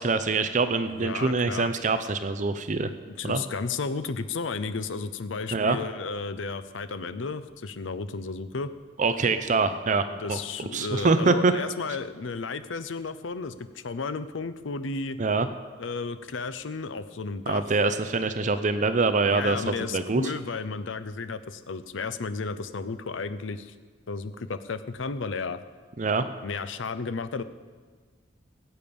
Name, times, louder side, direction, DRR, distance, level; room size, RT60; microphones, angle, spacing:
voice 1, 0.0-2.9 3.2-3.4 5.5-5.8 9.0-10.0 10.3-11.5 15.2-15.5 17.5-20.3 26.0-26.3, right 3 dB, 40° right, 10 dB, 0.6 m, -24 dB
voice 2, 0.9-1.7 2.8-8.7 10.1-15.2 15.8-17.6 19.3-23.7 24.1-25.6 26.4-27.4, left 4 dB, 90° left, 12 dB, 0.6 m, -33 dB
17.0 x 8.7 x 5.3 m, 1.5 s
head